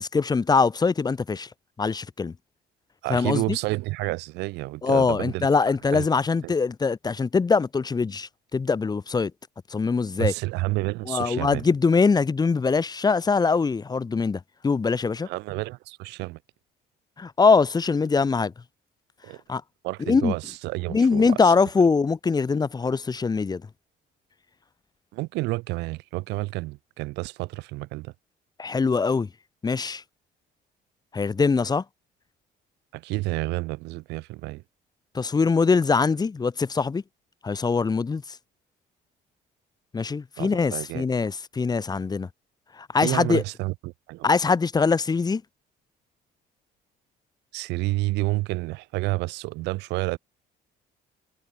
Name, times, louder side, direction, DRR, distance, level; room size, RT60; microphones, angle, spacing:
voice 1, 0.0-1.5 1.8-2.3 3.1-3.6 4.8-9.3 9.7-10.3 11.1-15.3 17.2-18.5 19.5-19.6 20.0-20.3 20.9-23.6 28.6-29.3 29.6-30.0 31.1-31.8 35.1-37.0 37.4-38.2 39.9-42.3 42.8-43.4 44.2-45.4, left 4 dB, 25° left, 1.2 m, -23 dB
voice 2, 3.0-5.5 5.9-6.1 6.4-6.5 10.2-11.6 15.2-16.4 19.2-19.4 19.8-21.5 25.1-28.1 32.9-34.6 40.4-41.1 43.0-44.3 47.5-50.2, right 21 dB, 90° right, 0.8 m, -30 dB
cardioid pair, 110°, 17 cm